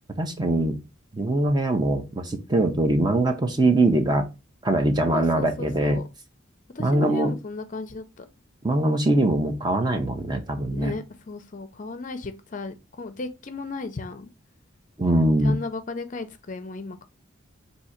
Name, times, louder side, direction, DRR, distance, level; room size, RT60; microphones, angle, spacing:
voice 1, 0.2-0.8 1.1-4.2 4.6-6.0 6.8-7.3 8.6-10.9 15.0-15.6, right 1 dB, 20° right, 0.5 m, -22 dB
voice 2, 5.1-6.0 6.7-8.2 10.7-14.3 15.4-17.1, left 3 dB, 40° left, 0.5 m, -35 dB
3.7 x 2.7 x 4.3 m
head